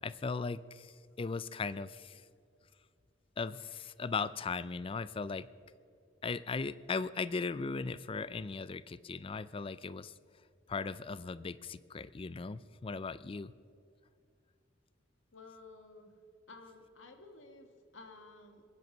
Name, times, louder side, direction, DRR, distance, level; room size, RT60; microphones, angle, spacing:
voice 1, 0.0-2.2 3.4-5.5 6.2-10.1 10.7-13.5, left 4 dB, 30° left, 17 dB, 0.4 m, -38 dB
voice 2, 15.3-16.1 16.5-18.6, left 3 dB, 85° left, 5 dB, 1.7 m, -53 dB
21.5 x 9.3 x 6.1 m, 2.3 s
head